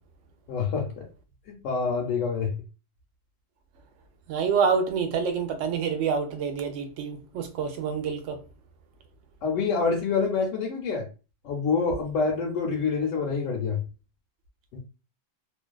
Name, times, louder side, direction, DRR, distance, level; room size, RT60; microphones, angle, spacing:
voice 1, 0.5-1.0 1.5-2.5 9.4-11.1 11.4-13.8 14.7-14.8, left 5 dB, 80° left, 1.0 m, -26 dB
voice 2, 4.3-8.4, right 6 dB, 75° right, 0.9 m, -27 dB
2.5 x 2.2 x 2.2 m
omnidirectional pair, 1.3 m